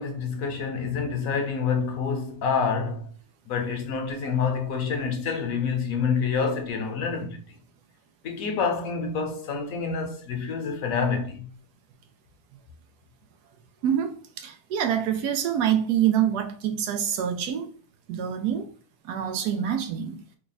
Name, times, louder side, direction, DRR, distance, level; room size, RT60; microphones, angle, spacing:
voice 1, 0.0-3.1 3.5-7.4 8.2-11.5, left 5 dB, 65° left, 1.1 m, -27 dB
voice 2, 13.8-17.7 18.1-18.7 19.0-20.2, right 9 dB, 85° right, 1.2 m, -26 dB
3.5 x 2.3 x 3.9 m
omnidirectional pair, 1.7 m